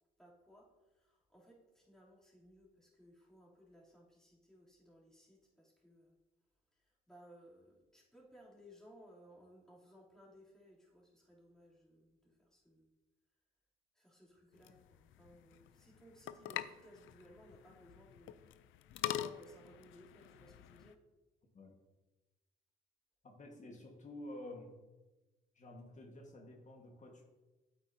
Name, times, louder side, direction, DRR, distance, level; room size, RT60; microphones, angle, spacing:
voice 1, 0.2-0.7 0.9-6.1 6.8-12.9 13.9-18.3 19.0-21.0, equal, 5° left, -6 dB, 3.0 m, -61 dB
sound 1, 14.5-20.9, left 12 dB, 80° left, 0.5 m, -45 dB
voice 2, 23.2-24.8 25.5-27.2, left 1 dB, 40° left, 0 dB, 1.5 m, -50 dB
8.9 x 8.3 x 2.7 m, 1.1 s
cardioid pair, 90°, 20 cm